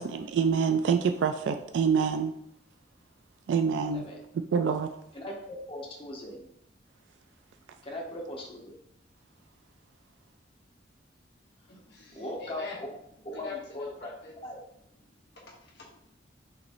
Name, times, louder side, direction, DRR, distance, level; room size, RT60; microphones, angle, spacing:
voice 1, 0.0-2.3 3.5-4.1 4.5-4.9, right 6 dB, 70° right, 7 dB, 0.3 m, -26 dB
voice 2, 5.1-6.5 7.8-8.7 12.1-12.6 13.2-14.1 14.4-14.6, left 1 dB, 30° left, -1 dB, 1.0 m, -39 dB
voice 3, 11.7-12.9 13.3-14.3 15.1-16.1, left 4 dB, 65° left, -3 dB, 1.2 m, -45 dB
5.7 x 3.1 x 2.6 m, 0.74 s
head